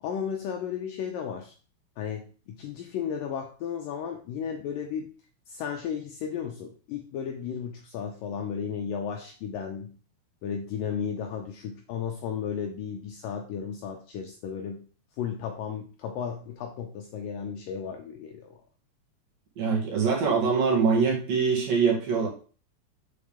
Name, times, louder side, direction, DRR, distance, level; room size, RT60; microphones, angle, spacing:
voice 1, 0.0-1.5 2.0-5.1 5.5-10.0 10.4-14.9 15.2-18.6, left 7 dB, 75° left, 3 dB, 2.1 m, -34 dB
voice 2, 19.6-22.3, right 5 dB, 60° right, -1 dB, 3.3 m, -23 dB
7.1 x 7.0 x 3.5 m, 0.38 s
omnidirectional pair, 4.7 m